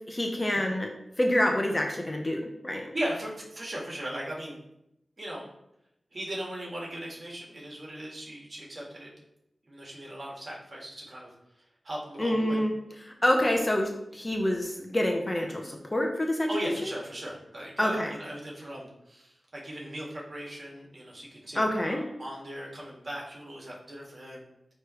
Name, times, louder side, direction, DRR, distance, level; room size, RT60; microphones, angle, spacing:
voice 1, 0.1-0.9 1.2-2.9 12.2-12.7 13.2-16.8 17.8-18.1 21.5-22.0, left 1 dB, 25° left, 2 dB, 0.9 m, -27 dB
voice 2, 2.9-4.6 5.2-5.5 6.1-9.1 9.7-11.3 11.8-12.7 16.5-24.4, right 1 dB, 55° right, -3 dB, 2.0 m, -38 dB
9.5 x 3.3 x 3.2 m, 0.82 s
cardioid pair, 50°, 0 cm